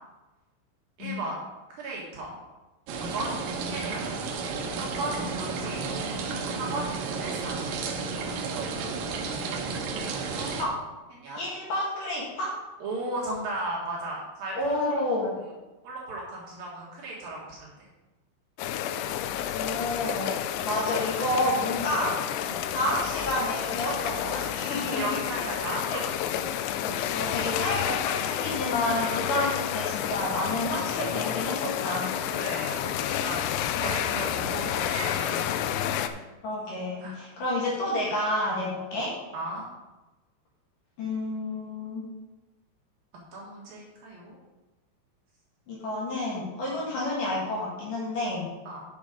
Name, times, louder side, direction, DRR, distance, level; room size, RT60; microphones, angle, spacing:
voice 1, 1.0-1.4 1.7-2.4 3.0-4.1 4.7-6.0 6.5-6.9 7.1-7.6 9.8-10.6 11.1-11.4 12.8-14.8 15.8-17.7 19.6-19.7 22.5-22.6 24.9-25.8 26.6-27.0 29.4-29.5 32.3-36.2 37.0-37.2 39.3-39.7 43.3-44.4 48.7-48.8, right 2 dB, 60° right, -4 dB, 2.9 m, -36 dB
sound 1, 2.9-10.6, right 4 dB, 85° right, 1.9 m, -32 dB
voice 2, 11.4-12.6 14.6-15.4 19.5-20.3 20.6-22.2 22.7-25.2 25.7-26.0 27.1-32.1 36.4-39.2 41.0-42.0 45.7-48.5, left 1 dB, 55° left, -5 dB, 2.8 m, -30 dB
sound 2, 18.6-36.1, left 10 dB, 85° left, 2.9 m, -30 dB
9.1 x 7.1 x 5.0 m, 1.1 s
omnidirectional pair, 5.5 m